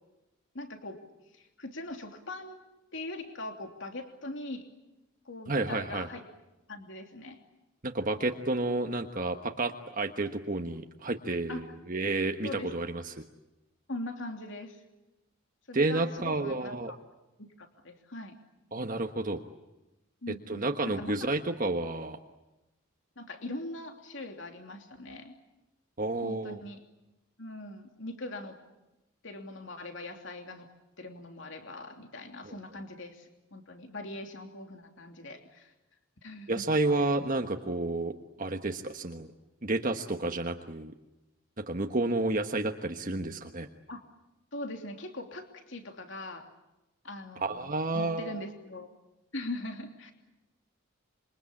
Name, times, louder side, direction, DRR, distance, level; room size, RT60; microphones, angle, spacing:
voice 1, 0.5-1.0 1.3-2.6 2.9-4.7 5.2-6.2 6.7-7.4 11.5-11.6 12.4-12.7 13.9-14.8 15.7-17.0 17.4-18.4 20.2-21.4 23.2-25.3 26.2-26.8 27.4-28.6 29.2-30.7 31.0-35.7 36.2-36.5 43.9-44.0 44.5-46.5 47.0-48.9 49.3-50.1, left 2 dB, 60° left, 4 dB, 3.0 m, -41 dB
voice 2, 5.5-6.1 7.8-13.1 15.7-16.9 18.7-19.4 20.5-22.2 26.0-26.6 32.5-32.6 36.5-38.1 38.4-39.3 39.6-40.9 41.7-43.7 47.4-48.3, right 2 dB, 40° right, 4 dB, 1.3 m, -30 dB
27.0 x 24.0 x 8.7 m, 0.99 s
head